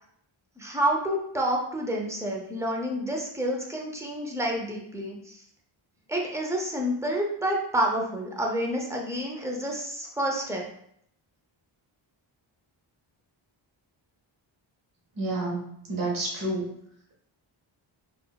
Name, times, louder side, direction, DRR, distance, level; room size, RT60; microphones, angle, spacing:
voice 1, 0.6-5.4 6.1-10.7, right 1 dB, 5° right, -1 dB, 0.5 m, -29 dB
voice 2, 15.1-16.7, right 2 dB, 45° right, -3 dB, 0.9 m, -30 dB
3.7 x 2.3 x 2.3 m, 0.71 s
cardioid pair, 90°, 48 cm